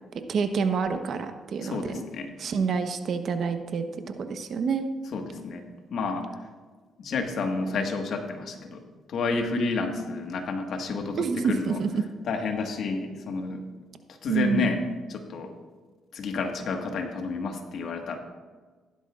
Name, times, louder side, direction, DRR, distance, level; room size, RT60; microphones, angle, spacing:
voice 1, 0.3-1.8 2.4-3.8 4.2-4.9 11.2-12.0 14.3-14.7, right 5 dB, 60° right, 7 dB, 1.0 m, -27 dB
voice 2, 1.6-2.3 5.1-5.6 5.9-6.3 7.0-8.8 9.1-11.8 12.2-13.6 14.2-14.8 15.1-15.5 16.1-18.2, left 4 dB, 65° left, 4 dB, 1.6 m, -30 dB
15.5 x 11.5 x 2.5 m, 1.4 s
cardioid pair, 90°, 0 cm